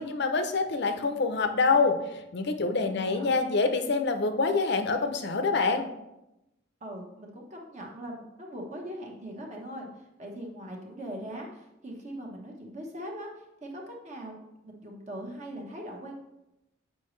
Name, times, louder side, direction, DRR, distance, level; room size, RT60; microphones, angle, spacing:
voice 1, 0.0-2.0 2.3-5.9, left 4 dB, 55° left, 7 dB, 0.6 m, -26 dB
voice 2, 2.8-3.3 6.8-14.4 14.6-16.2, equal, 35° right, 0 dB, 1.0 m, -41 dB
7.7 x 4.9 x 3.2 m, 0.91 s
head